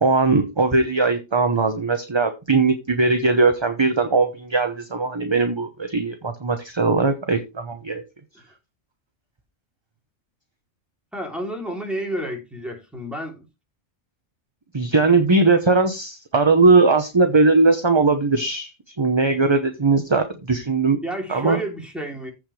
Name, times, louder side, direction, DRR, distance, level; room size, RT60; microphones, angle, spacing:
voice 1, 0.0-8.0 14.7-18.7 19.0-21.0 21.3-21.6, right 3 dB, 25° right, 0.9 m, -19 dB
voice 2, 11.1-13.4 21.0-22.3, right 1 dB, ahead, 3.0 m, -30 dB
15.0 x 5.3 x 3.3 m
omnidirectional pair, 1.3 m